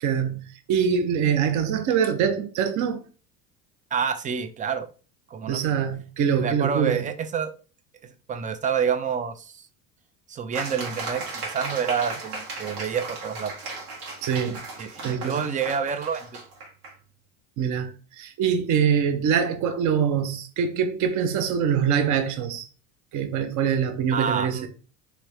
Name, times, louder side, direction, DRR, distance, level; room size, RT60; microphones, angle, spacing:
voice 1, 0.0-3.0 5.5-7.0 14.2-14.6 15.0-15.4 17.6-22.7 23.1-24.7, right 7 dB, 45° right, 0.7 m, -24 dB
voice 2, 3.9-4.9 5.3-5.6 6.4-7.5 8.0-9.6 10.3-13.5 14.8-16.4 24.1-24.7, right 7 dB, 20° right, 0.4 m, -28 dB
sound 1, 10.5-16.9, right 3 dB, 90° right, 1.4 m, -36 dB
3.2 x 2.7 x 3.1 m
hypercardioid pair, 80°, 44 cm